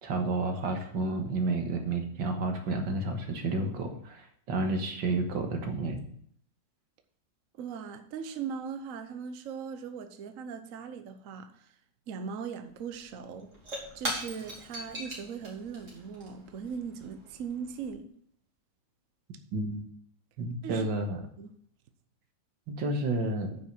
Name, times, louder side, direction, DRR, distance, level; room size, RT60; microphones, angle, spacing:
voice 1, 0.0-6.1 19.5-19.8 20.4-21.2 22.7-23.6, right 2 dB, 85° right, 2.1 m, -31 dB
voice 2, 7.6-11.7 12.1-13.5 13.9-18.1 20.6-20.9 21.4-21.6, right 6 dB, 55° right, 1.1 m, -39 dB
Shatter / Crushing, 12.7-12.8 13.0-17.9, equal, 40° right, 3.0 m, -41 dB
9.4 x 5.8 x 6.0 m
omnidirectional pair, 2.0 m